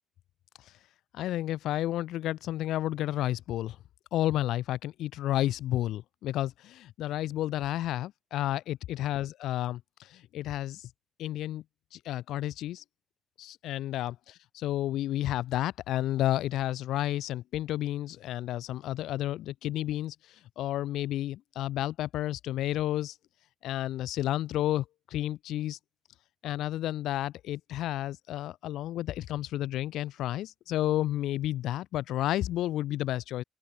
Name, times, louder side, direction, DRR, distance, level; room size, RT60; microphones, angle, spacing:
voice 1, 1.1-3.8 4.1-9.8 10.1-10.8 11.2-11.6 11.9-12.8 13.4-20.1 20.6-23.1 23.6-24.8 25.1-25.8 26.4-33.4, left 14 dB, 85° left, 2.8 m, -31 dB
open air
cardioid pair, 90°, 0 cm